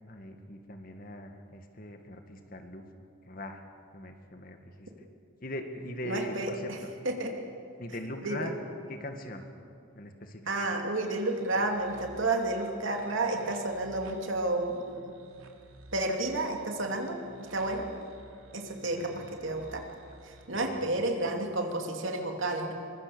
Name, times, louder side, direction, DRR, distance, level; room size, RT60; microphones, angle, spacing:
voice 1, 0.1-2.8 3.3-3.6 3.9-4.9 5.4-6.7 7.8-8.5 8.9-9.4 9.9-10.4 18.8-19.2 20.5-21.1, left 1 dB, 40° left, 5 dB, 1.9 m, -41 dB
voice 2, 6.0-6.8 7.0-7.3 8.2-8.5 10.5-15.1 15.9-17.2 17.5-17.9 18.5-19.8 20.2-22.7, right 2 dB, 65° right, 2 dB, 2.8 m, -31 dB
sound 1, 10.9-20.5, right 2 dB, 80° right, 2.6 m, -54 dB
24.0 x 21.5 x 7.0 m, 2.5 s
head